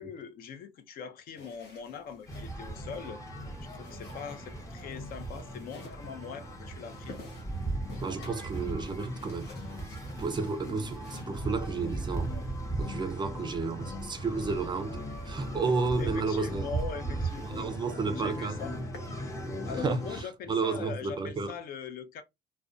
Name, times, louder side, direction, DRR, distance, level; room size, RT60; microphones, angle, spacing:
voice 1, 0.0-3.2 3.7-7.2 16.0-17.7 18.1-18.7 19.6-22.2, left 6 dB, 60° left, 0.5 m, -41 dB
sound 1, 1.3-13.0 14.3-15.3 15.7-15.9 16.3-16.5 16.9-17.0 17.3-17.4 17.7-18.1 18.5-19.2, left 2 dB, 80° left, 0.9 m, -53 dB
sound 2, 2.3-20.2, right 1 dB, 20° left, 0.7 m, -37 dB
voice 2, 8.0-9.5 10.2-12.4 12.8-15.0 15.3-16.7 17.4-18.6 19.8-21.5, right 4 dB, 25° right, 0.4 m, -32 dB
2.4 x 2.1 x 2.4 m
cardioid pair, 110°, 17 cm